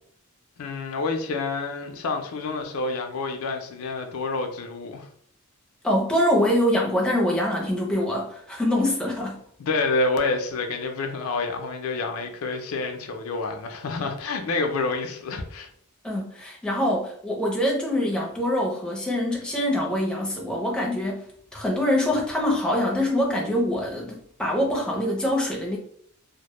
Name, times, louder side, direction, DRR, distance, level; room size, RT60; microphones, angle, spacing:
voice 1, 0.6-5.1 9.6-15.7, left 3 dB, 80° left, 0.4 m, -28 dB
voice 2, 5.8-9.4 16.0-21.2 21.5-25.8, left 1 dB, 5° left, 0.4 m, -24 dB
2.0 x 2.0 x 2.9 m
head